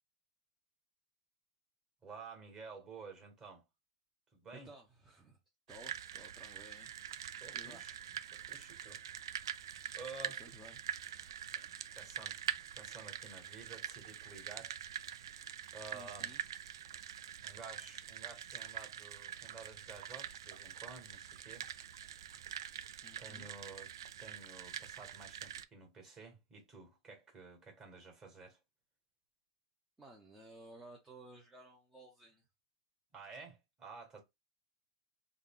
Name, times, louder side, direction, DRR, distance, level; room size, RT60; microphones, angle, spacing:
voice 1, 2.0-3.6 4.3-4.7 7.4-8.0 8.3-9.0 9.9-10.4 11.5-11.7 11.9-14.8 15.7-16.3 17.4-21.7 23.2-23.9 24.2-28.6 33.1-34.2, right 4 dB, 25° right, 1.7 m, -52 dB
voice 2, 4.5-5.4 5.7-7.0 7.5-7.8 9.9-10.9 15.9-16.4 23.0-23.5 30.0-32.5, right 1 dB, 10° right, 0.8 m, -56 dB
sound 1, 5.7-25.7, right 9 dB, 85° right, 0.3 m, -45 dB
3.6 x 2.3 x 3.7 m
supercardioid pair, 135°, 2 cm